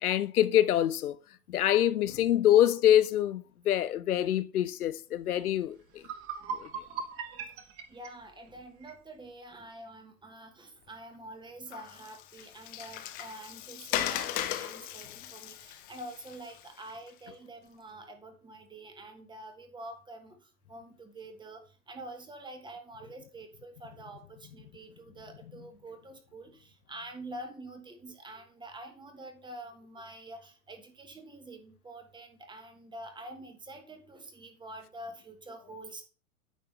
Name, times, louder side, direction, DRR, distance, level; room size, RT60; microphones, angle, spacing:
voice 1, 0.0-1.1 1.5-5.8 6.6-6.7, left 11 dB, 80° left, 0.7 m, -25 dB
sound 1, 5.5-5.6 5.9-9.0, right 6 dB, 30° right, 1.1 m, -39 dB
voice 2, 7.9-20.4 20.7-36.0, right 1 dB, 10° right, 1.3 m, -46 dB
Water, 11.7-17.1, left 12 dB, 20° left, 0.4 m, -37 dB
9.3 x 5.8 x 3.3 m
hypercardioid pair, 110°, 44 cm